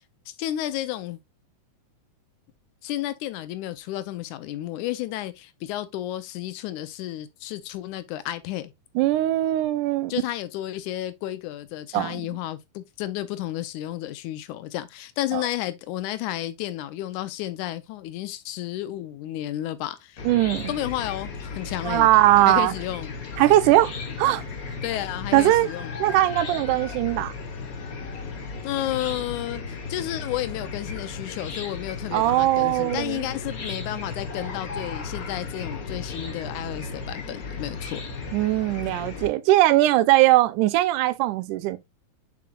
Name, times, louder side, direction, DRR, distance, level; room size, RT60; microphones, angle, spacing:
voice 1, 0.3-1.2 2.8-8.7 10.1-20.3 20.7-22.1 22.5-23.1 24.8-25.9 28.6-38.0, left 14 dB, 80° left, 2.1 m, -32 dB
voice 2, 9.0-10.1 11.9-12.2 15.3-15.4 20.2-20.7 21.8-22.7 23.4-24.8 25.3-25.7 26.0-27.3 32.1-33.2 38.3-41.8, right 15 dB, 85° right, 2.1 m, -20 dB
Chicken rooster / Cricket, 20.2-39.3, left 4 dB, 45° left, 1.1 m, -35 dB
6.9 x 6.4 x 2.3 m
omnidirectional pair, 3.6 m